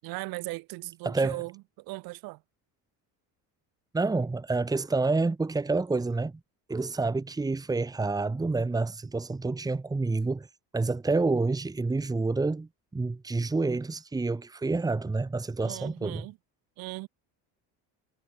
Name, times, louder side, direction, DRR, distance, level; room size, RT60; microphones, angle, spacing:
voice 1, 0.0-1.5 1.8-2.4 15.6-16.4 16.8-17.1, right 23 dB, 75° right, 7.6 m, -38 dB
voice 2, 1.0-1.4 3.9-6.3 6.7-10.5 10.7-16.3, right 3 dB, 10° right, 2.1 m, -28 dB
cardioid pair, 150°, 36 cm